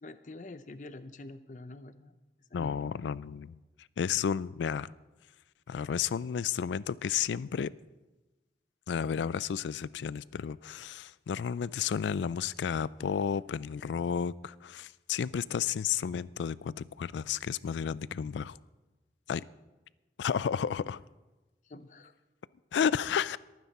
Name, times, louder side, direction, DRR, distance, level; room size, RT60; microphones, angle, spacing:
voice 1, 0.0-2.1 2.5-2.8 21.6-22.1, left 2 dB, 45° left, 0.6 m, -46 dB
voice 2, 2.5-3.6 4.0-4.9 5.7-7.7 8.9-18.6 19.3-19.4 20.2-21.0 22.7-23.4, left 7 dB, 85° left, 0.3 m, -32 dB
22.5 x 9.4 x 4.2 m
head